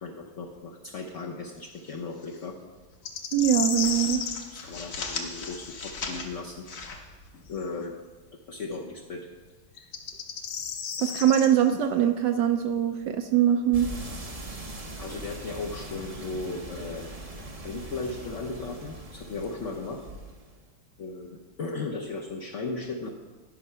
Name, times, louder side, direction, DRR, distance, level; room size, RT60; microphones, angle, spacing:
voice 1, 0.0-2.6 4.5-6.9 7.5-7.9 8.5-9.3 9.8-9.9 15.0-17.1 17.6-20.0 21.0-23.1, left 3 dB, 65° left, -1 dB, 0.7 m, -36 dB
sound 1, 1.6-2.5 2.8-3.0 3.4-7.8, left 4 dB, 50° left, 1.2 m, -39 dB
sound 2, 3.1-4.4 7.6-7.7 9.8-11.5, left 7 dB, 85° left, 1.7 m, -32 dB
voice 2, 3.3-4.2 11.0-13.9, right 10 dB, 75° right, 7 dB, 1.0 m, -22 dB
sound 3, 13.7-20.6, right 2 dB, 50° right, 0.4 m, -41 dB
11.5 x 5.7 x 5.5 m, 1.3 s
omnidirectional pair, 2.3 m